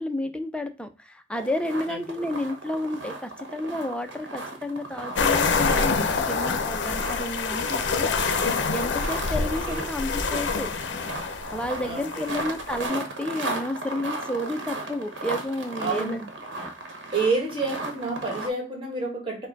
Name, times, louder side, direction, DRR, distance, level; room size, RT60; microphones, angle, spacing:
voice 1, 0.0-8.1 8.7-10.7 11.5-16.3 16.6-16.7, left 1 dB, 5° left, 0.5 m, -31 dB
sound 1, 1.3-18.5, right 2 dB, 70° right, 1.1 m, -36 dB
voice 2, 1.9-2.3 9.4-9.8 11.8-12.4 15.8-16.2 17.1-19.5, right 3 dB, 30° right, 1.6 m, -29 dB
sound 2, 5.2-12.8, left 4 dB, 65° left, 0.6 m, -26 dB
4.7 x 2.2 x 4.6 m
head